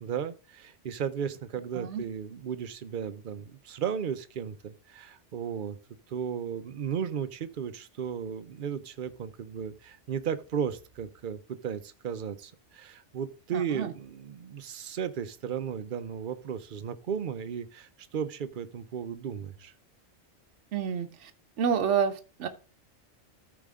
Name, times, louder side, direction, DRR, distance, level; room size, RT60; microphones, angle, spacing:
voice 1, 0.0-5.8 6.1-19.7, right 7 dB, 50° right, 0.8 m, -35 dB
voice 2, 13.5-13.9 20.7-21.3 21.6-22.5, right 7 dB, 75° right, 1.1 m, -29 dB
13.5 x 5.0 x 3.6 m
omnidirectional pair, 1.2 m